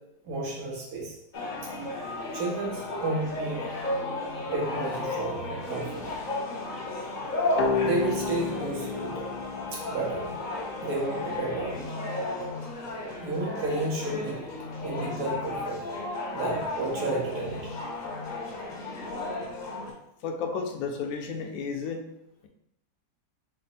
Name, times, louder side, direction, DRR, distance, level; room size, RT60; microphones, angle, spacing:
voice 1, 0.2-1.2 2.1-3.7 4.5-6.0 7.8-9.1 9.7-10.4 10.8-11.9 13.2-14.4 14.8-15.8 16.3-17.7, right 2 dB, 75° right, -3 dB, 1.6 m, -31 dB
sound 1, 1.3-19.9, left 2 dB, 45° left, 0.6 m, -34 dB
sound 2, 7.6-11.1, left 4 dB, 90° left, 1.2 m, -32 dB
voice 2, 20.2-22.0, left 5 dB, 70° left, 3 dB, 1.0 m, -32 dB
5.1 x 2.0 x 4.1 m, 0.80 s
omnidirectional pair, 1.7 m